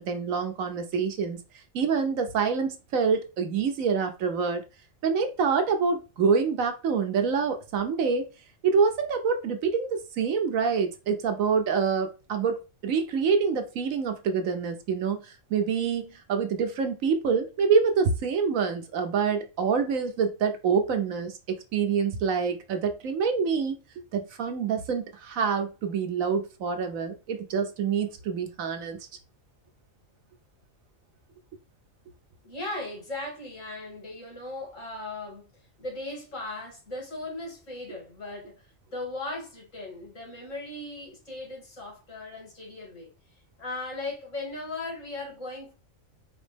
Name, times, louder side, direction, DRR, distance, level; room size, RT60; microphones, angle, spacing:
voice 1, 0.0-1.4 1.7-4.6 5.0-8.3 8.6-29.0, right 5 dB, 85° right, 1.3 m, -26 dB
voice 2, 32.4-35.5 35.8-43.1 43.6-45.7, left 2 dB, 70° left, 2.9 m, -37 dB
4.9 x 3.1 x 3.4 m
omnidirectional pair, 1.4 m